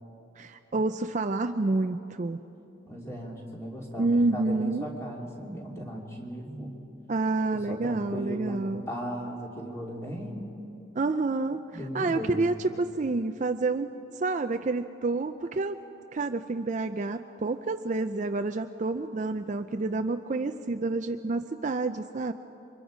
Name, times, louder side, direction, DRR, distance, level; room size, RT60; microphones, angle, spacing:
voice 1, 0.4-2.4 4.0-4.9 7.1-8.9 11.0-13.9 14.1-15.8 16.1-22.3, right 3 dB, 35° right, 8 dB, 0.4 m, -28 dB
voice 2, 2.9-6.7 7.7-8.6 8.9-10.5 11.7-12.5, equal, 15° left, -2 dB, 2.8 m, -37 dB
28.5 x 24.5 x 5.1 m, 3.0 s
head